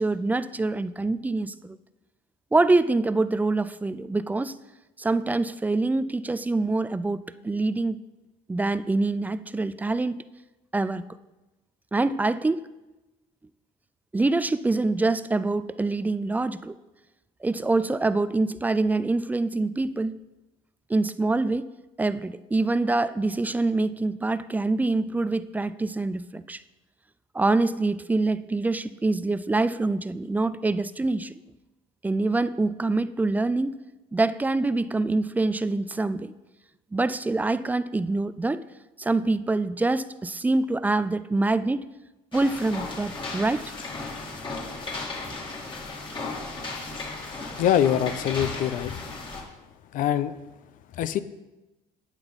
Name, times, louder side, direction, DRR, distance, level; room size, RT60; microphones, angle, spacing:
voice 1, 0.0-1.8 2.5-4.6 5.0-8.0 8.5-10.2 10.7-11.1 11.9-12.6 14.1-16.8 17.4-20.2 20.9-21.7 22.0-26.6 27.3-31.4 32.0-33.8 34.1-36.3 36.9-38.6 39.0-41.8 42.3-43.6, right 2 dB, 10° right, 15 dB, 0.4 m, -25 dB
sound 1, 42.3-49.4, left 3 dB, 30° left, 2.5 m, -35 dB
voice 2, 47.6-48.9 49.9-50.3 51.0-51.2, left 10 dB, 60° left, 13 dB, 0.7 m, -23 dB
12.5 x 8.8 x 4.1 m, 1.0 s
cardioid pair, 120°, 16 cm